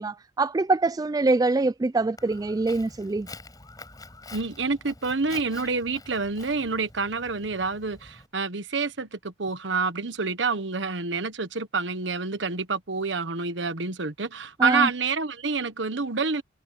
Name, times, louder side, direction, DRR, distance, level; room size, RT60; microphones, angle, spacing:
voice 1, 0.0-3.3 14.6-14.9, right 3 dB, 20° right, 0.3 m, -24 dB
Walk footsteps, 2.2-8.3, left 3 dB, 20° left, 7.9 m, -47 dB
voice 2, 4.3-16.4, right 4 dB, 85° right, 1.3 m, -28 dB
head